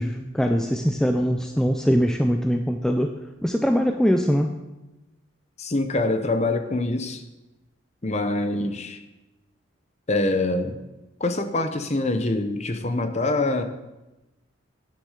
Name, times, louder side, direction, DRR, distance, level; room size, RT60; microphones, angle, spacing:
voice 1, 0.0-3.1 3.4-4.5, equal, 5° left, 4 dB, 0.4 m, -22 dB
voice 2, 5.6-7.2 8.0-9.0 10.1-10.8 11.2-13.6, left 2 dB, 30° left, 8 dB, 0.8 m, -25 dB
10.0 x 6.4 x 6.5 m, 1.0 s
head